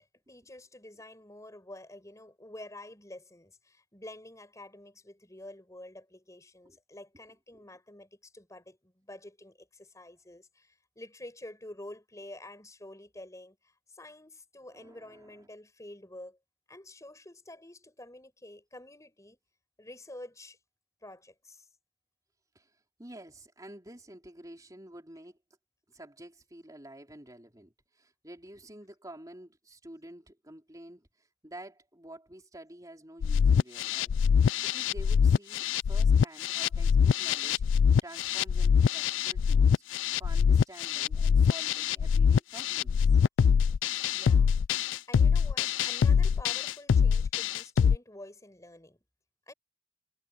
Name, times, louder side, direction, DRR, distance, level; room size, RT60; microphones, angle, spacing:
voice 1, 0.3-16.4 16.7-19.4 19.8-20.6 21.0-21.7 44.1-44.5 45.1-49.0 49.5-49.6, left 1 dB, 15° left, 5.2 m, -48 dB
voice 2, 14.7-15.5 22.5-25.4 25.9-43.2, right 1 dB, 20° right, 4.1 m, -50 dB
sound 1, 33.2-48.0, left 7 dB, 85° left, 0.3 m, -24 dB
head